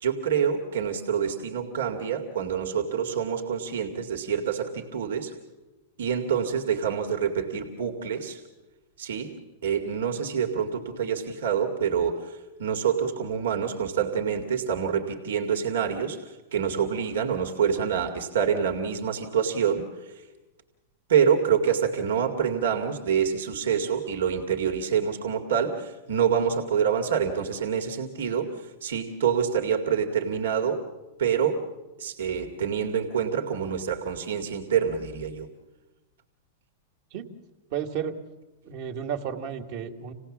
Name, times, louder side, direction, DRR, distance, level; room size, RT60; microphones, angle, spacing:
voice 1, 0.0-5.3 6.0-8.4 9.0-20.2 21.1-30.8 31.2-31.7 32.0-35.5, right 7 dB, 80° right, 5 dB, 2.2 m, -26 dB
voice 2, 37.7-38.2 38.7-40.1, right 8 dB, 60° right, 4 dB, 2.1 m, -32 dB
27.0 x 17.5 x 7.3 m, 1.1 s
hypercardioid pair, 125°, 0 cm